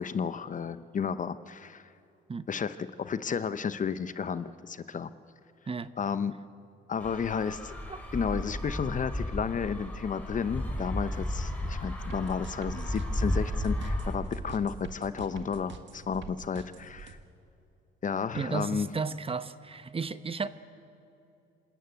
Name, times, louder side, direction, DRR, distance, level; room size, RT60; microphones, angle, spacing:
voice 1, 0.0-1.9 2.5-5.1 6.0-6.3 6.9-7.7 8.1-17.2 18.0-18.9, left 6 dB, 40° left, 13 dB, 0.7 m, -32 dB
sound 1, 7.0-14.1, left 1 dB, 10° left, 4.3 m, -33 dB
sound 2, 12.1-17.1, right 7 dB, 70° right, 1.6 m, -45 dB
voice 2, 18.3-20.5, right 5 dB, 30° right, 13 dB, 0.9 m, -33 dB
26.5 x 13.5 x 9.2 m, 2.7 s
cardioid pair, 90°, 20 cm